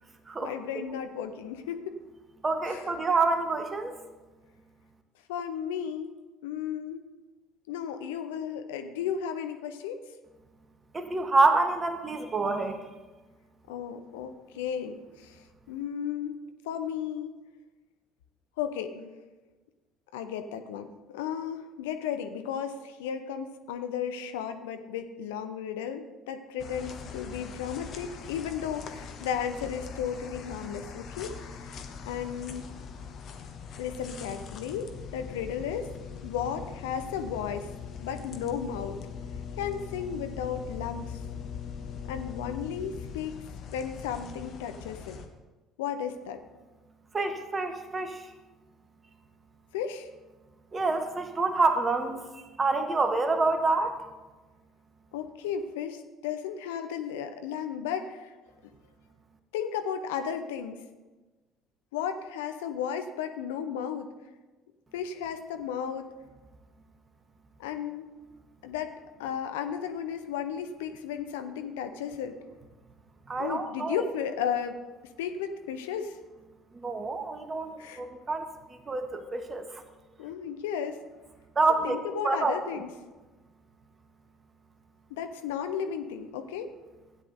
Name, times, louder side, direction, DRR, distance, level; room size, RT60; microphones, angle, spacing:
voice 1, 0.4-2.0 2.6-2.9 5.3-6.1 6.4-7.0 7.7-10.0 13.7-16.4 16.6-17.3 18.6-19.1 20.1-31.8 32.0-32.7 33.8-35.9 36.2-37.7 38.0-39.0 39.6-41.2 42.1-43.3 43.7-45.2 45.8-46.4 49.7-50.1 55.1-58.4 59.5-60.8 61.9-64.1 64.9-66.1 67.6-68.1 68.6-68.9 69.2-72.4 73.4-76.2 77.8-78.0 80.2-81.0 81.8-82.9 85.1-86.7, left 8 dB, 70° left, 8 dB, 0.7 m, -34 dB
voice 2, 2.4-3.9 10.9-12.8 47.1-48.2 50.7-53.9 73.3-74.0 76.7-78.5 78.9-79.6 81.5-82.0 82.2-82.5, right 3 dB, 25° right, 7 dB, 1.2 m, -27 dB
sound 1, 26.6-45.3, left 6 dB, 50° left, 1.1 m, -41 dB
16.0 x 9.8 x 2.7 m, 1.2 s
figure-of-eight pair, 55°, 0 cm